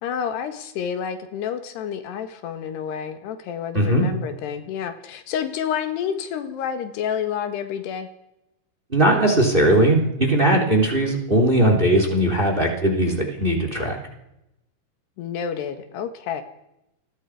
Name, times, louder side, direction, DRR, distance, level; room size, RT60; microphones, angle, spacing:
voice 1, 0.0-8.1 15.2-16.4, left 8 dB, 90° left, 8 dB, 3.7 m, -29 dB
voice 2, 8.9-14.0, right 1 dB, 15° right, 3 dB, 3.0 m, -19 dB
29.0 x 20.5 x 4.9 m, 0.87 s
omnidirectional pair, 4.7 m